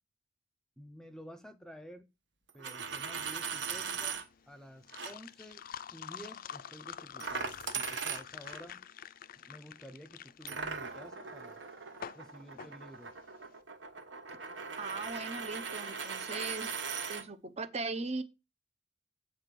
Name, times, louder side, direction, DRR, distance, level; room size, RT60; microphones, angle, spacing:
voice 1, 0.8-2.1 2.5-4.2 4.5-5.6 5.9-8.8 9.4-11.6 12.1-13.1, equal, 5° left, 0.8 m, -51 dB
Coin (dropping), 2.5-4.2 4.9-5.1 7.2-8.6 10.5-17.2, right 5 dB, 70° right, 1.3 m, -39 dB
sound 1, 3.9-13.5, left 8 dB, 50° left, 0.4 m, -47 dB
voice 2, 14.8-16.8 17.1-18.2, right 3 dB, 35° right, 0.8 m, -39 dB
7.9 x 4.5 x 6.8 m
head